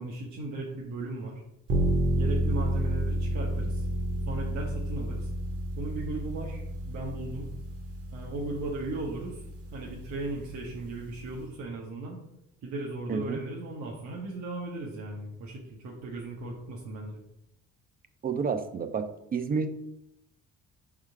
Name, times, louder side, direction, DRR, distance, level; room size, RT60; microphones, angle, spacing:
voice 1, 0.0-1.4 2.2-3.8 4.3-5.3 5.8-7.5 8.1-9.4 9.7-12.2 12.6-17.2, right 2 dB, 70° right, -2 dB, 1.1 m, -37 dB
sound 1, 1.7-11.4, right 1 dB, 50° right, 1.1 m, -31 dB
voice 2, 13.1-13.4 18.2-19.7, right 5 dB, 30° right, 9 dB, 0.5 m, -30 dB
5.5 x 3.6 x 4.8 m, 0.83 s
cardioid pair, 135°, 30 cm